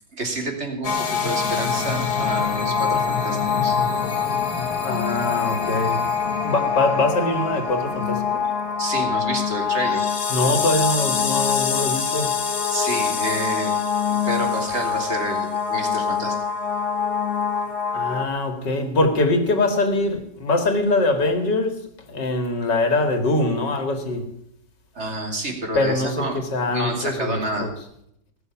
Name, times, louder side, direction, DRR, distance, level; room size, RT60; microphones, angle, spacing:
voice 1, 0.1-3.8 8.8-10.1 12.7-13.7 14.1-16.4 24.9-27.7, right 1 dB, 40° right, 3.4 m, -29 dB
sound 1, 0.8-18.3, left 6 dB, 65° left, 2.1 m, -24 dB
voice 2, 4.8-8.5 10.3-12.4 17.9-21.8 22.1-24.3 25.7-27.9, left 2 dB, 85° left, 2.7 m, -23 dB
20.0 x 7.0 x 7.1 m
omnidirectional pair, 1.8 m